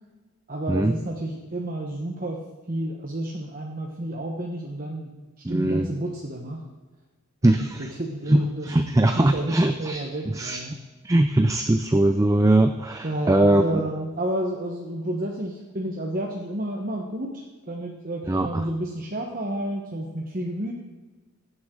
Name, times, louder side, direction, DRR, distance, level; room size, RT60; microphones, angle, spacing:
voice 1, 0.5-2.4 2.7-5.1 5.5-6.6 7.4-10.8 13.0-20.7, right 1 dB, 40° right, -1 dB, 1.1 m, -31 dB
voice 2, 5.4-5.9 7.4-7.9 8.3-10.1 10.3-10.6 11.0-13.8 18.3-18.7, right 1 dB, 15° right, 7 dB, 0.4 m, -21 dB
16.0 x 9.6 x 3.9 m, 1.3 s
head